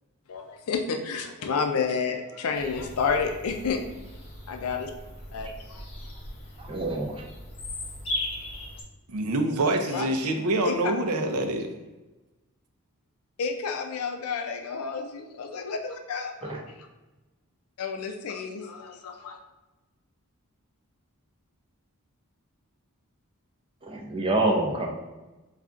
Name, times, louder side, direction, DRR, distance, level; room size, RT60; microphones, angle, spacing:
voice 1, 0.3-3.8 4.5-4.9 5.3-6.1 9.9-10.1 10.6-10.9 13.4-16.9 17.8-19.4, left 5 dB, 75° left, 4 dB, 0.4 m, -30 dB
Bird vocalization bird call bird song, 2.5-8.8, left 1 dB, 25° left, 0.6 m, -38 dB
voice 2, 6.7-7.1 16.5-16.6 23.9-24.9, right 2 dB, 25° right, 0 dB, 0.5 m, -26 dB
voice 3, 9.1-11.7, right 2 dB, 85° right, 5 dB, 0.5 m, -26 dB
5.5 x 2.4 x 2.4 m, 1.1 s
head